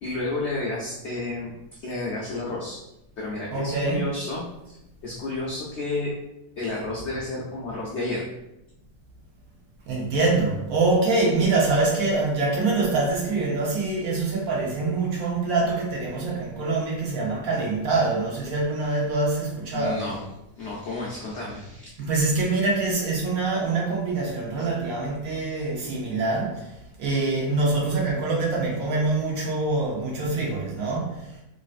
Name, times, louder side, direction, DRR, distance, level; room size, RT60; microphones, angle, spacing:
voice 1, 0.0-2.8 3.2-6.1 6.6-8.3 19.7-20.3 20.6-21.9, left 2 dB, 85° left, -3 dB, 0.6 m, -31 dB
voice 2, 3.5-4.0 9.9-20.0 22.0-26.7 27.0-31.2, right 3 dB, 65° right, -2 dB, 1.1 m, -25 dB
3.2 x 2.6 x 2.4 m, 0.89 s
omnidirectional pair, 1.8 m